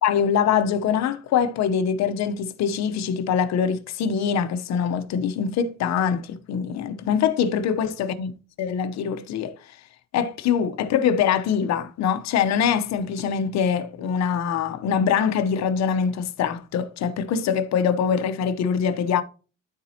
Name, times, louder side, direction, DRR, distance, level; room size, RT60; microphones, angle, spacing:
voice 1, 0.0-8.3 8.6-9.5 10.1-19.2, left 7 dB, 60° left, 0.9 m, -23 dB
12.5 x 4.2 x 2.8 m
cardioid pair, 130°, 31 cm